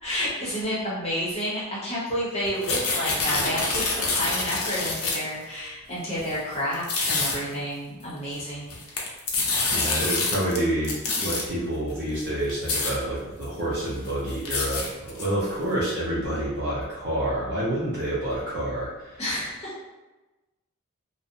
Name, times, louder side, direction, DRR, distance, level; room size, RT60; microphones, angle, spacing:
voice 1, 0.0-9.1 19.2-19.7, equal, 30° left, -9 dB, 0.8 m, -30 dB
sound 1, 2.5-5.4 6.2-6.3 6.7-7.4 8.5-10.6 10.8-11.4 12.1-12.2 12.5-12.9 13.4-13.5 13.8-15.5, left 3 dB, 70° left, 0.5 m, -27 dB
voice 2, 9.3-19.2, right 1 dB, 50° right, -7 dB, 0.6 m, -28 dB
2.5 x 2.0 x 2.7 m, 1.1 s
head